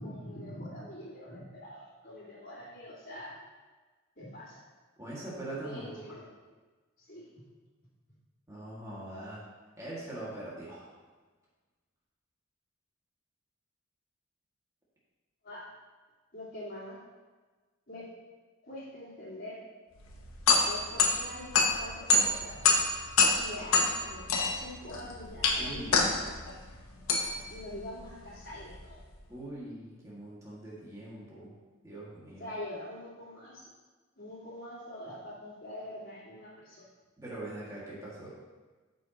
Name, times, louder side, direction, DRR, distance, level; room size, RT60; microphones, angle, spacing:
voice 1, 0.0-3.4 4.2-4.6 5.6-6.2 7.0-7.3 15.4-15.6 16.3-17.0 17.9-18.1 18.6-19.6 20.7-22.6 23.3-25.9 27.5-29.0 32.4-33.7 34.2-36.9, left 1 dB, 45° left, -12 dB, 2.2 m, -44 dB
voice 2, 5.0-6.0 8.5-9.4 9.8-11.0 25.6-25.9 29.3-31.6 31.8-32.5 37.2-38.3, right 1 dB, 15° right, -7 dB, 2.0 m, -42 dB
sound 1, 20.0-29.1, left 3 dB, 85° left, 1.1 m, -28 dB
13.0 x 5.4 x 3.0 m, 1.3 s
head